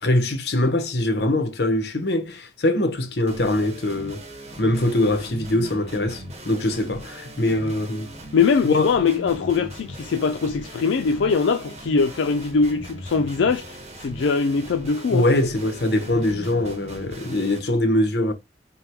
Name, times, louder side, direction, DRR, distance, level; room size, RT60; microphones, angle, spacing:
voice 1, 0.0-4.2 4.6-8.1 8.6-8.9 15.1-18.3, left 1 dB, 60° left, 0.9 m, -22 dB
sound 1, 3.3-17.6, right 1 dB, 35° right, 1.1 m, -39 dB
voice 2, 8.3-15.3, left 5 dB, 85° left, 0.4 m, -22 dB
3.5 x 2.2 x 4.4 m
head